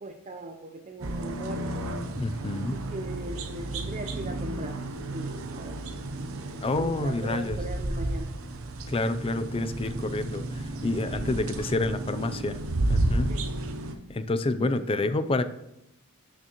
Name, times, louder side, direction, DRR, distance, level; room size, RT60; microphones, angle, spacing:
voice 1, 0.0-1.9 2.5-2.6 2.9-4.8 5.1-5.8 7.0-8.3 11.2-11.5 13.3-13.4 14.6-14.7 15.0-15.1, right 1 dB, 30° right, 5 dB, 0.6 m, -39 dB
sound 1, 1.0-14.0, right 2 dB, 75° right, 0.8 m, -32 dB
voice 2, 2.2-2.8 6.6-7.6 8.9-13.4 14.1-15.4, left 2 dB, 25° left, 11 dB, 0.4 m, -28 dB
12.5 x 6.2 x 3.0 m, 0.89 s
head